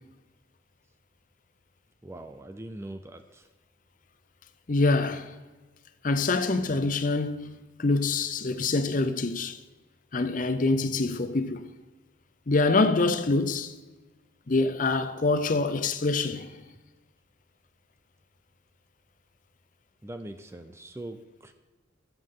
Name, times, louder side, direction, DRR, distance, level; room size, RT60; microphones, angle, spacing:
voice 1, 2.0-3.5 20.0-21.5, right 1 dB, 15° right, 0.4 m, -42 dB
voice 2, 4.7-5.3 6.0-9.6 10.1-11.7 12.5-13.7 14.5-16.5, left 3 dB, 45° left, 0.6 m, -25 dB
14.0 x 7.2 x 3.7 m
head